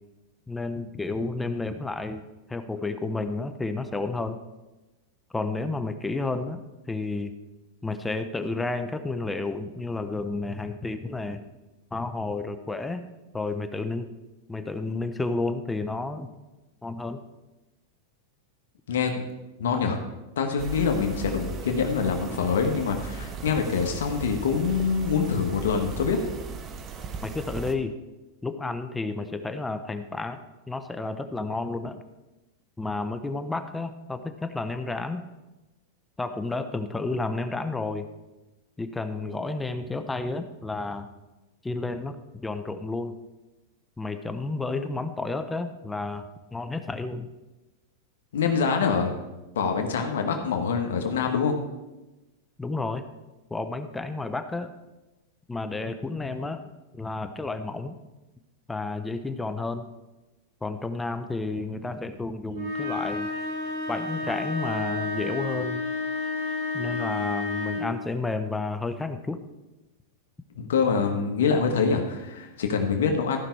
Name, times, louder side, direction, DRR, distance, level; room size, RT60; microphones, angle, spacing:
voice 1, 0.5-2.2 2.5-4.4 5.3-6.6 6.9-7.3 7.8-11.4 11.9-13.0 13.3-14.1 14.5-16.3 16.8-17.2 27.2-27.9 28.4-30.4 30.7-32.0 32.8-35.2 36.2-38.1 38.8-41.1 41.6-42.2 42.4-43.2 44.0-47.3 52.6-53.0 53.5-54.7 55.5-56.6 56.9-58.0 58.7-59.8 60.6-63.3 63.9-65.8 66.7-69.4, left 3 dB, 10° left, 9 dB, 0.7 m, -31 dB
voice 2, 19.6-20.0 20.4-26.2 48.3-49.1 49.5-51.6 70.6-73.4, left 5 dB, 80° left, 4 dB, 1.4 m, -25 dB
sound 1, 20.6-27.7, right 4 dB, 30° right, 1.0 m, -38 dB
sound 2, 62.5-68.0, left 3 dB, 60° right, 3.7 m, -30 dB
14.5 x 5.9 x 4.6 m, 1.1 s
hypercardioid pair, 125°, 0 cm